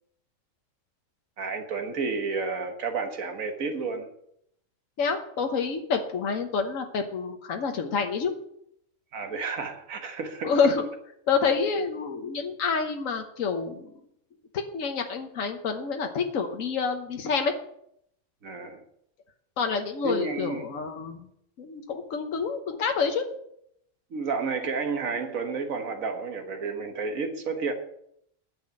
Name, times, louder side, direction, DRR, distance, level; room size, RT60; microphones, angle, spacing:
voice 1, 1.4-4.1 9.1-10.5 18.4-18.8 20.0-20.6 24.1-27.7, right 4 dB, 85° right, 5 dB, 1.7 m, -31 dB
voice 2, 5.0-8.3 10.4-10.8 11.3-13.8 14.5-17.5 19.6-21.3 21.6-23.3, left 5 dB, 80° left, 4 dB, 1.4 m, -28 dB
9.7 x 6.4 x 8.9 m, 0.74 s
omnidirectional pair, 1.4 m